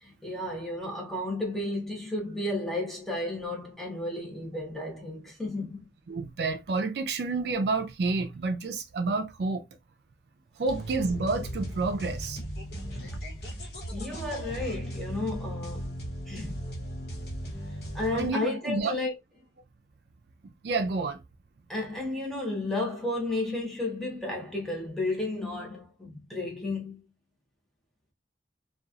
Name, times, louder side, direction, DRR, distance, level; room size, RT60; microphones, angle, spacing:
voice 1, 0.0-5.9 13.9-15.9 16.3-16.6 17.9-19.1 21.7-27.0, left 2 dB, ahead, 0.7 m, -33 dB
voice 2, 6.1-9.6 10.6-12.4 18.1-19.0 20.6-21.2, right 3 dB, 65° right, 0.4 m, -29 dB
sound 1, 10.7-18.3, equal, 55° left, 1.1 m, -37 dB
2.9 x 2.3 x 2.3 m
head